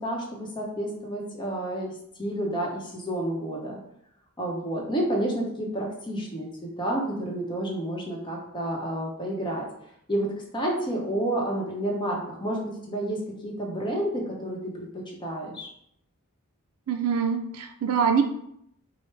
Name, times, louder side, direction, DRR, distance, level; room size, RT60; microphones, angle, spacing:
voice 1, 0.0-1.9 2.2-3.8 4.4-9.7 10.1-13.2 13.4-15.7, right 1 dB, 20° left, -1 dB, 0.7 m, -30 dB
voice 2, 16.9-18.2, right 6 dB, 70° right, 5 dB, 0.4 m, -24 dB
4.5 x 2.0 x 3.1 m, 0.73 s
head